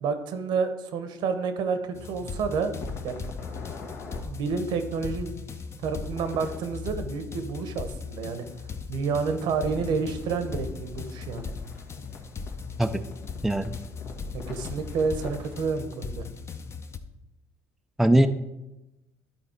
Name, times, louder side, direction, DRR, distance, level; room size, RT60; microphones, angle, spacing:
voice 1, 0.0-2.8 3.0-3.2 4.2-5.3 5.8-8.4 8.9-11.5 14.3-16.2, right 5 dB, 70° right, 9 dB, 1.0 m, -29 dB
sound 1, 1.9-17.0, left 5 dB, 35° left, 0.7 m, -38 dB
sound 2, 2.8-4.2 6.0-6.6 9.3-15.7, left 3 dB, 75° left, 1.4 m, -42 dB
voice 2, 13.4-13.8 18.0-18.3, right 1 dB, 5° right, 8 dB, 0.4 m, -20 dB
11.0 x 4.2 x 4.4 m, 0.95 s
supercardioid pair, 90°, 8 cm